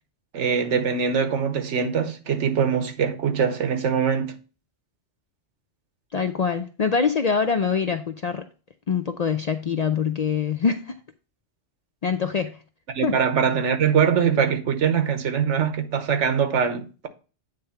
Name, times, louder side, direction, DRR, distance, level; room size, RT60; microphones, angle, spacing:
voice 1, 0.3-4.4 12.9-17.1, right 7 dB, 85° right, 1.3 m, -22 dB
voice 2, 6.1-8.4 8.9-10.9 12.0-12.6 13.0-13.2, left 6 dB, 55° left, 0.4 m, -24 dB
9.1 x 3.4 x 5.6 m
omnidirectional pair, 1.2 m